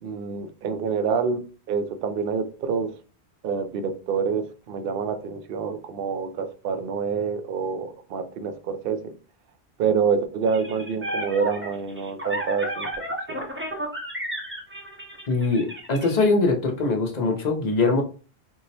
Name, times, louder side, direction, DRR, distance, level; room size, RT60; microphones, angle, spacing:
voice 1, 0.0-2.9 3.4-9.1 9.8-13.4, right 6 dB, 65° right, 9 dB, 0.7 m, -27 dB
sound 1, 10.5-16.3, equal, 15° right, 0.5 m, -33 dB
voice 2, 15.3-18.0, left 3 dB, 45° left, 2 dB, 0.7 m, -22 dB
4.5 x 2.0 x 2.7 m, 0.36 s
omnidirectional pair, 1.1 m